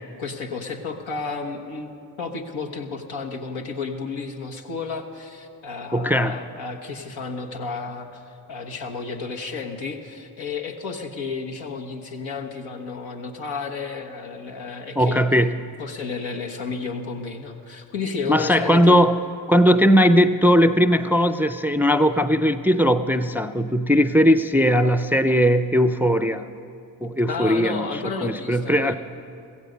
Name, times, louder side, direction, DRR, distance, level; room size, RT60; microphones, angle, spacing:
voice 1, 0.2-1.9 2.2-15.2 15.8-19.0 27.3-29.0, left 4 dB, 75° left, 1 dB, 1.4 m, -32 dB
voice 2, 5.9-6.4 15.0-15.6 18.3-19.2 19.5-26.5 27.0-27.9 28.2-28.9, equal, 5° right, 10 dB, 0.5 m, -18 dB
16.0 x 14.5 x 5.2 m, 2.6 s
supercardioid pair, 45°, 47 cm